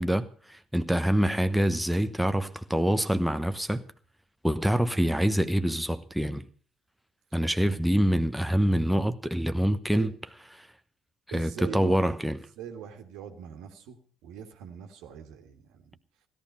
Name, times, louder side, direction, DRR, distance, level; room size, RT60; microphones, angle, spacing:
voice 1, 0.0-3.8 4.4-6.5 7.3-10.1 10.6-10.7 11.3-12.4, equal, ahead, 1.0 m, -25 dB
voice 2, 11.3-12.2 12.6-16.0, right 8 dB, 65° right, 1.7 m, -42 dB
16.5 x 12.5 x 5.4 m
figure-of-eight pair, 50°, 0 cm